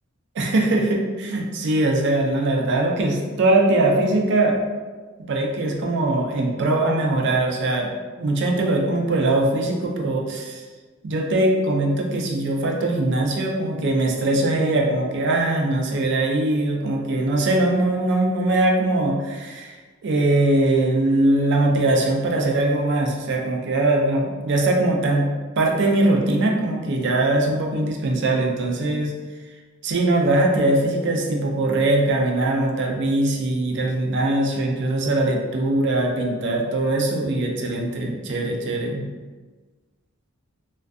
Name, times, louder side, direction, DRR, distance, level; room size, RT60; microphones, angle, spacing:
voice 1, 0.4-4.6 5.3-10.6 11.0-19.7 20.0-25.3 25.6-29.1 29.8-39.0, right 2 dB, 55° right, 1 dB, 0.4 m, -21 dB
2.4 x 2.3 x 2.3 m, 1.3 s
head